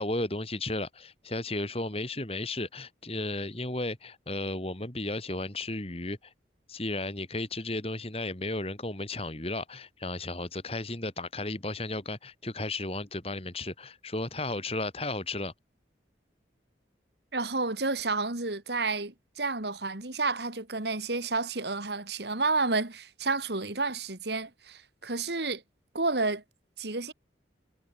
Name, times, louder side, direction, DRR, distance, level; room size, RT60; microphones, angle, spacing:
voice 1, 0.0-6.3 6.7-15.5, left 2 dB, 30° left, 2.8 m, -34 dB
voice 2, 17.3-25.6 25.9-26.4 26.8-27.1, right 3 dB, 65° right, 2.5 m, -30 dB
head